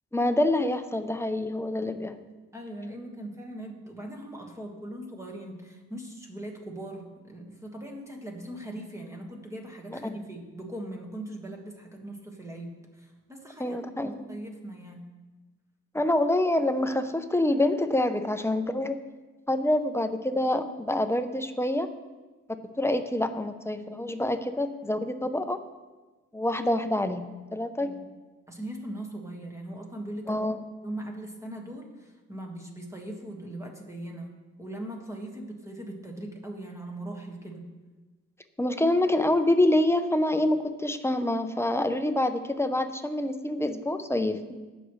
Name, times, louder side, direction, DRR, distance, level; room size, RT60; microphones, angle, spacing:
voice 1, 0.1-2.1 9.9-10.0 13.6-14.2 15.9-19.0 19.5-21.9 22.8-25.6 26.3-27.2 27.5-27.9 30.3-30.6 38.6-44.4, left 1 dB, 10° left, 9 dB, 0.6 m, -26 dB
voice 2, 2.5-15.1 27.8-28.1 28.5-30.4 30.8-34.3 34.6-37.6, right 1 dB, 10° right, 1 dB, 1.7 m, -40 dB
16.0 x 6.3 x 3.2 m, 1.2 s
cardioid pair, 90°, 30 cm